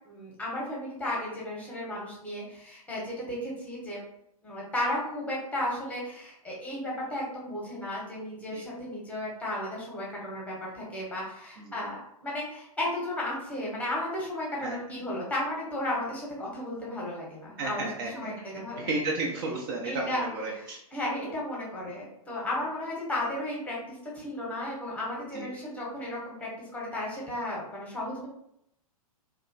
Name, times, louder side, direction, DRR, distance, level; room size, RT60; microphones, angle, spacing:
voice 1, 0.1-4.0 4.4-18.9 19.8-28.3, left 1 dB, 5° left, -5 dB, 0.8 m, -34 dB
voice 2, 17.6-20.8 25.3-25.5, right 2 dB, 40° right, -1 dB, 0.4 m, -33 dB
2.7 x 2.2 x 2.6 m, 0.76 s
figure-of-eight pair, 110°, 19 cm